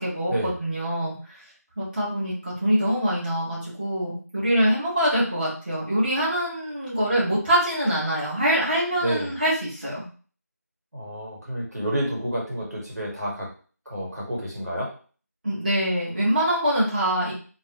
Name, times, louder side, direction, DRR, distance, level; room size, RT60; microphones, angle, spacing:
voice 1, 0.0-1.4 1.8-10.0 15.4-17.3, equal, 30° right, -9 dB, 1.7 m, -24 dB
voice 2, 10.9-13.5 13.9-14.9, right 1 dB, 70° right, -4 dB, 1.7 m, -29 dB
3.4 x 3.3 x 3.0 m, 0.40 s
figure-of-eight pair, 170°, 9 cm